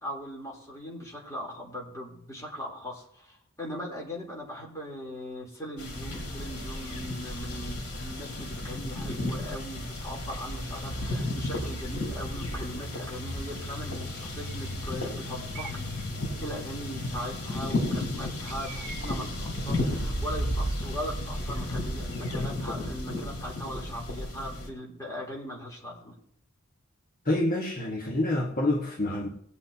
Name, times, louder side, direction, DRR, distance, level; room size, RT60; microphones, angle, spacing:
voice 1, 0.0-15.9 16.2-26.2, equal, 15° left, -3 dB, 3.5 m, -39 dB
sound 1, 5.8-24.7, left 1 dB, 80° left, 3.9 m, -33 dB
Bird, 13.1-13.6 14.3-14.9 15.5-16.1 18.5-19.5, right 6 dB, 40° right, 2.5 m, -47 dB
voice 2, 27.2-29.3, left 1 dB, 40° left, -2 dB, 1.5 m, -27 dB
20.0 x 8.2 x 2.9 m, 0.68 s
head